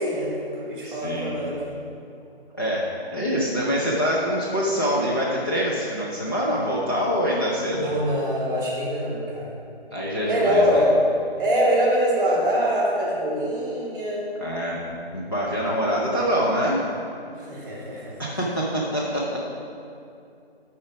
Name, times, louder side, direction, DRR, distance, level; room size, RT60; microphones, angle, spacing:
voice 1, 0.0-1.6 7.7-9.5 10.2-10.9 11.4-14.2 17.3-18.1, equal, 10° right, -5 dB, 1.6 m, -24 dB
voice 2, 0.8-1.4 2.5-2.8 3.1-7.9 9.9-10.9 14.4-14.8 15.1-16.9 18.2-19.4, equal, 20° left, -7 dB, 0.5 m, -25 dB
11.0 x 4.3 x 4.8 m, 2.6 s
figure-of-eight pair, 165°, 31 cm